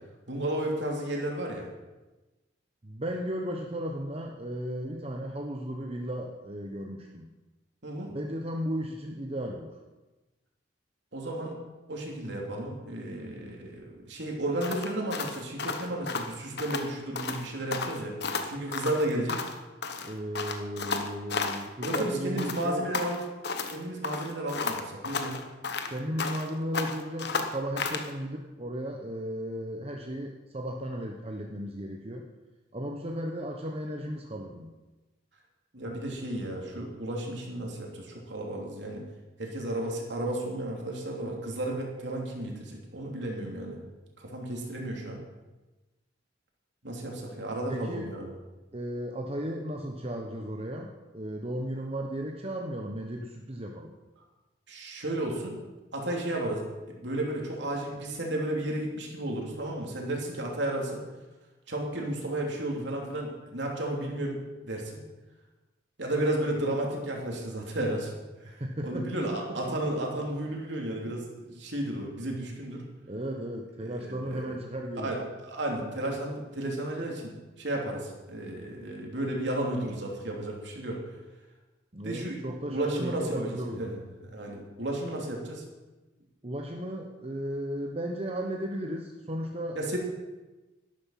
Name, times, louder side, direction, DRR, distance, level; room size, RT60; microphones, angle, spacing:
voice 1, 0.3-1.7 7.8-8.1 11.1-11.6 11.9-18.1 18.5-19.4 21.8-23.2 23.7-25.4 35.7-39.0 39.4-43.8 44.2-45.2 46.8-48.3 54.7-55.6 55.9-61.0 61.7-65.0 66.0-68.1 68.4-72.8 73.8-74.6 75.0-81.0 82.0-82.4 82.7-85.6 89.7-90.0, right 1 dB, 65° right, -1 dB, 3.1 m, -33 dB
voice 2, 2.8-7.3 8.1-9.8 20.0-22.9 25.9-32.3 32.7-34.8 47.7-48.2 48.7-54.0 68.4-69.2 69.7-69.8 73.1-75.2 81.9-83.9 86.4-89.8, equal, 30° right, 2 dB, 1.0 m, -35 dB
sound 1, 14.6-16.9 17.2-17.4 17.7-19.6 19.8-22.1 22.4-23.8 24.0-26.5 26.7-28.1, left 4 dB, 60° left, 1.3 m, -33 dB
12.0 x 12.0 x 5.8 m, 1.1 s
head